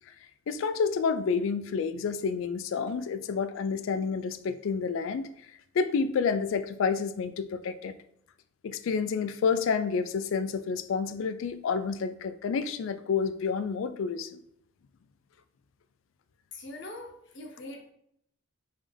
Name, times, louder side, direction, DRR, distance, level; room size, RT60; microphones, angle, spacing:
voice 1, 0.5-5.3 5.7-8.0 8.6-14.4, left 5 dB, 70° left, 11 dB, 0.3 m, -29 dB
voice 2, 16.5-17.9, left 2 dB, 55° left, 2 dB, 0.7 m, -42 dB
3.6 x 3.2 x 3.4 m, 0.73 s
head